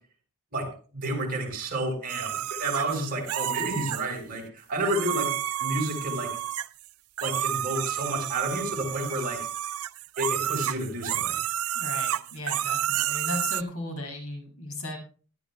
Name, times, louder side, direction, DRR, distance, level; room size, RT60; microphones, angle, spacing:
voice 1, 0.5-5.3 5.6-6.4 7.2-9.4 10.2-11.4, right 1 dB, 40° right, 1 dB, 4.9 m, -30 dB
sound 1, 2.1-4.0 4.8-6.9 7.2-13.6, right 11 dB, 75° right, 0.5 m, -30 dB
voice 2, 11.7-15.0, left 1 dB, 70° left, 1 dB, 7.0 m, -36 dB
21.5 x 12.5 x 2.3 m, 0.38 s
head